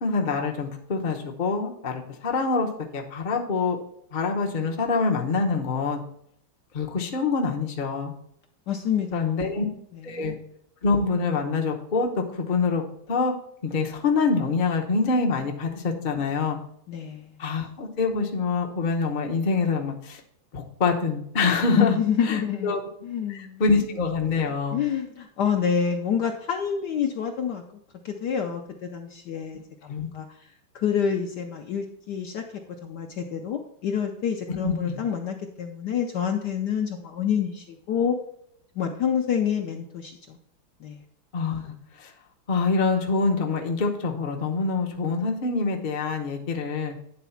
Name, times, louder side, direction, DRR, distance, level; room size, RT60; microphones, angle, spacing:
voice 1, 0.0-3.8 4.1-6.0 6.7-8.1 9.1-9.6 10.0-10.4 10.8-13.3 13.6-16.6 17.4-20.2 20.5-22.8 23.3-24.8 29.9-30.1 34.5-35.0 41.3-42.1 42.5-47.0, left 4 dB, 40° left, 1 dB, 0.6 m, -25 dB
voice 2, 8.7-9.5 10.1-10.3 16.9-17.3 21.8-22.7 23.0-23.6 24.7-27.6 28.0-30.3 30.7-32.4 32.8-38.2 38.8-40.4 40.8-41.0, left 8 dB, 65° left, 3 dB, 1.1 m, -27 dB
9.5 x 4.0 x 5.7 m, 0.71 s
omnidirectional pair, 2.4 m